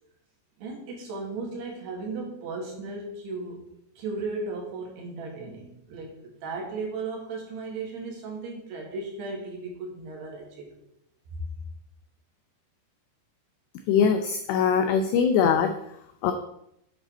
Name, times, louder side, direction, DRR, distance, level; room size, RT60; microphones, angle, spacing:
voice 1, 0.6-3.6 4.0-10.8, right 3 dB, 60° right, -1 dB, 3.7 m, -36 dB
voice 2, 13.9-15.7 16.2-16.3, left 7 dB, 85° left, 7 dB, 2.4 m, -22 dB
9.3 x 7.7 x 4.5 m, 0.78 s
omnidirectional pair, 5.8 m